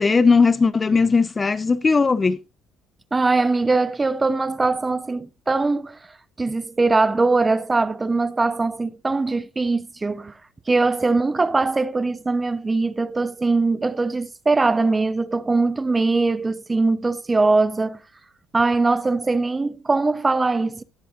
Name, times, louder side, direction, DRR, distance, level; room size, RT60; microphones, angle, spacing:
voice 1, 0.0-2.4, left 4 dB, 25° left, 0.6 m, -18 dB
voice 2, 3.1-6.0 6.4-10.3 10.7-18.0 18.5-20.8, right 3 dB, 20° right, 0.8 m, -21 dB
18.5 x 7.7 x 2.5 m
cardioid pair, 100°, 0 cm